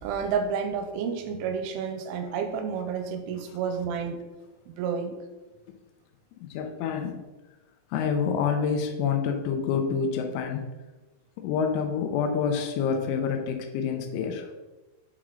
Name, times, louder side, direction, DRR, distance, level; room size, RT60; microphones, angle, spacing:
voice 1, 0.0-4.2 4.7-5.2, right 6 dB, 90° right, 6 dB, 3.1 m, -30 dB
voice 2, 6.4-7.2 7.9-10.7 11.4-14.5, left 6 dB, 80° left, 4 dB, 3.2 m, -27 dB
7.5 x 4.7 x 3.8 m, 1.1 s
omnidirectional pair, 5.5 m